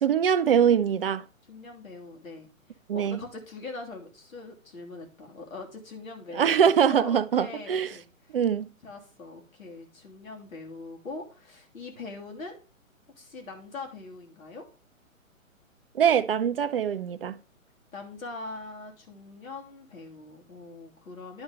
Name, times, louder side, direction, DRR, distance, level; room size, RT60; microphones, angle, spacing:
voice 1, 0.0-1.2 2.9-3.2 6.3-7.9 8.3-8.7 15.9-17.4, right 8 dB, 45° right, 0.5 m, -23 dB
voice 2, 1.5-2.5 2.9-6.6 6.9-8.0 8.8-12.6 13.2-14.6 17.9-21.4, left 3 dB, 75° left, 2.9 m, -42 dB
10.5 x 4.0 x 5.1 m
hypercardioid pair, 140°, 41 cm